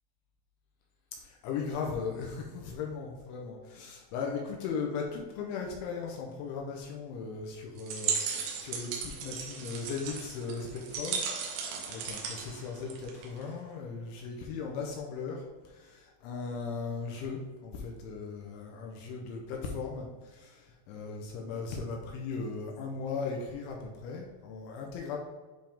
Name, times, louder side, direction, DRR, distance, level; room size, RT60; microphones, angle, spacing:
voice 1, 1.2-25.2, left 5 dB, 80° left, 1 dB, 2.9 m, -38 dB
sound 1, 7.8-13.4, right 6 dB, 75° right, 2.8 m, -36 dB
10.5 x 3.5 x 3.5 m, 1.3 s
omnidirectional pair, 5.8 m